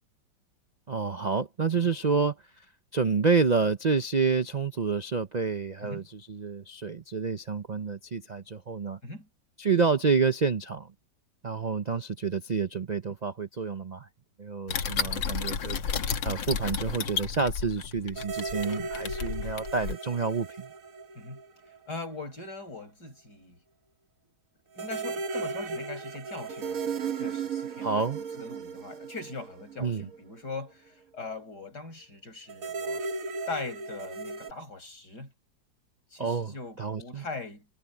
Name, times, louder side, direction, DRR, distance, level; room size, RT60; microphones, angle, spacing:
voice 1, 0.9-2.7 2.9-9.0 9.6-10.9 11.4-14.1 14.4-15.8 16.2-20.7 27.8-28.2 29.8-30.1 36.2-37.2, right 5 dB, 65° right, 0.4 m, -28 dB
sound 1, 14.7-19.9, left 6 dB, 90° left, 2.2 m, -32 dB
sound 2, 18.2-21.9 22.2-22.3 24.8-30.2 32.5-34.5, right 4 dB, 50° right, 1.5 m, -36 dB
voice 2, 21.9-23.6 24.7-33.0 33.5-35.3 36.1-37.7, left 3 dB, 60° left, 8.1 m, -41 dB
omnidirectional pair, 2.0 m